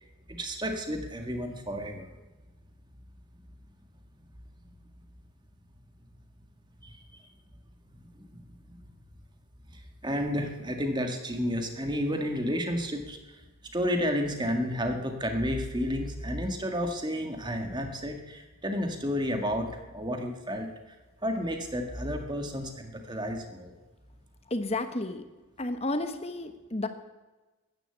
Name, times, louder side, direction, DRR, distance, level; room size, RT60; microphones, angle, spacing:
voice 1, 0.3-2.1 6.8-7.3 8.0-8.4 8.7-8.8 9.7-13.4 13.7-20.7 21.2-23.7, equal, 20° right, 4 dB, 1.8 m, -31 dB
voice 2, 24.5-25.2 25.6-26.9, left 2 dB, 30° left, 8 dB, 1.2 m, -31 dB
14.0 x 10.5 x 8.2 m, 1.2 s
head